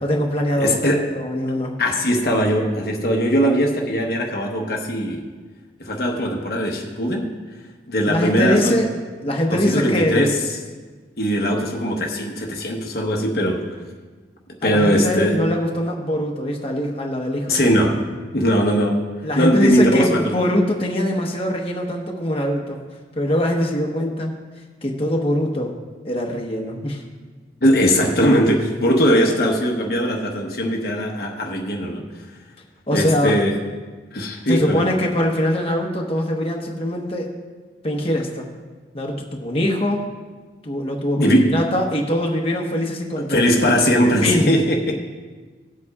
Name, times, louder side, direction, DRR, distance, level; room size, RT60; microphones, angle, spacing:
voice 1, 0.0-1.7 8.1-8.9 9.2-10.2 14.6-17.6 19.2-22.8 23.1-24.3 24.8-25.7 26.0-27.0 32.9-33.3 34.5-37.3 37.8-38.4 38.9-40.0 40.6-43.5 44.2-44.6, equal, 30° left, 0 dB, 1.1 m, -22 dB
voice 2, 0.6-1.1 1.8-5.2 5.8-7.3 7.9-8.9 9.5-10.6 11.2-13.8 14.6-15.4 17.5-19.1 19.3-20.3 27.6-32.0 32.9-33.6 34.1-34.8 41.2-41.6 43.2-45.1, equal, 55° left, 1 dB, 1.0 m, -20 dB
18.0 x 8.0 x 2.4 m, 1.4 s
head